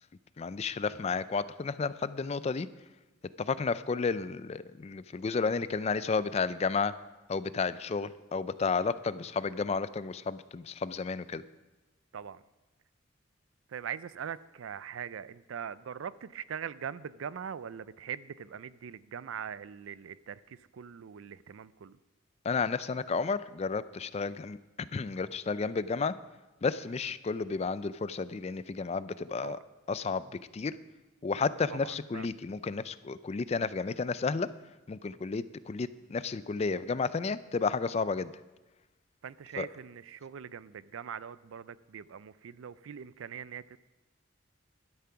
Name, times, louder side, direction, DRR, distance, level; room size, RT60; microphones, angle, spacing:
voice 1, 0.4-2.7 3.4-6.9 7.3-11.4 22.4-24.6 24.9-26.1 26.6-29.6 29.9-30.3 30.5-30.8 31.2-34.5 34.9-38.3 39.6-39.7, left 4 dB, 30° left, 15 dB, 0.3 m, -32 dB
voice 2, 13.7-22.0 27.0-27.1 29.4-29.6 31.7-32.3 39.2-43.8, right 8 dB, 80° right, 17 dB, 0.4 m, -42 dB
12.0 x 9.6 x 5.7 m, 1.1 s
head